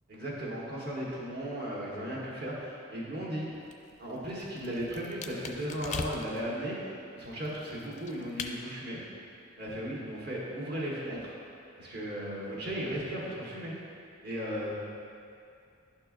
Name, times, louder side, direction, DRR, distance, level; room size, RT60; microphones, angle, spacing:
voice 1, 0.1-3.5 4.0-9.0 9.6-11.3 11.8-13.7 14.2-14.7, equal, 50° right, -6 dB, 1.4 m, -36 dB
sound 1, 3.6-6.5 7.2-8.6, left 4 dB, 35° left, 0.3 m, -41 dB
11.0 x 4.4 x 2.5 m, 2.4 s
head